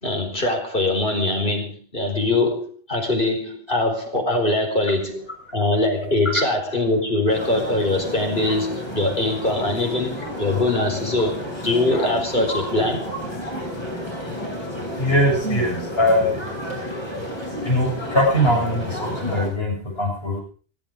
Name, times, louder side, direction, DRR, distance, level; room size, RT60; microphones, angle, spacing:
voice 1, 0.0-5.2 5.5-11.4 11.6-13.1, left 2 dB, 60° left, 3 dB, 4.5 m, -22 dB
sound 1, 7.3-19.5, equal, 25° left, 7.5 m, -31 dB
voice 2, 15.0-16.5 17.6-20.4, equal, 75° left, 0 dB, 7.8 m, -21 dB
22.0 x 13.0 x 5.1 m, 0.41 s
omnidirectional pair, 1.0 m